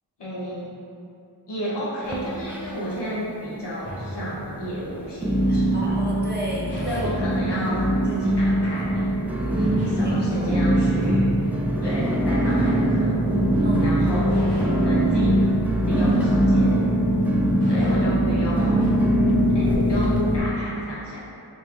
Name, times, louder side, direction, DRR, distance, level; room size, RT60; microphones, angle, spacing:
voice 1, 0.2-0.7 1.5-5.7 6.8-9.2 9.9-11.3 11.8-13.4 13.8-14.5 14.8-15.5 15.8-16.9 17.7-18.9 19.5-21.2, equal, 85° left, -8 dB, 0.9 m, -31 dB
sound 1, 2.0-3.0 3.3-3.9 4.4-4.5 5.2-20.4, right 1 dB, 5° right, 0.3 m, -22 dB
sound 2, 3.8-18.9, equal, 30° left, 1.2 m, -37 dB
voice 2, 5.5-7.1 7.8-8.1 9.4-11.1 13.6-14.0, equal, 25° right, -5 dB, 0.7 m, -34 dB
3.1 x 2.6 x 3.5 m, 2.6 s
wide cardioid pair, 40°, 40 cm